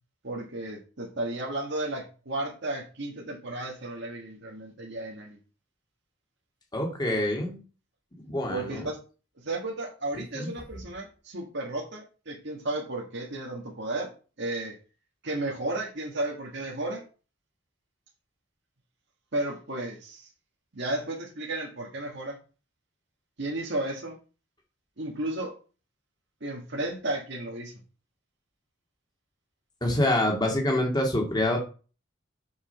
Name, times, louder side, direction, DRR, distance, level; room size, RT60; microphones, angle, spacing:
voice 1, 0.2-5.4 8.5-9.0 9.3-14.1 14.4-14.7 15.2-17.0 19.3-20.3 20.7-22.4 23.4-24.2 25.0-25.5 26.4-27.8, right 2 dB, 60° right, -2 dB, 1.7 m, -33 dB
voice 2, 6.7-7.6 8.3-8.8 10.3-10.5 29.8-31.6, left 1 dB, 20° left, 0 dB, 2.3 m, -26 dB
7.1 x 5.0 x 5.6 m, 0.35 s
head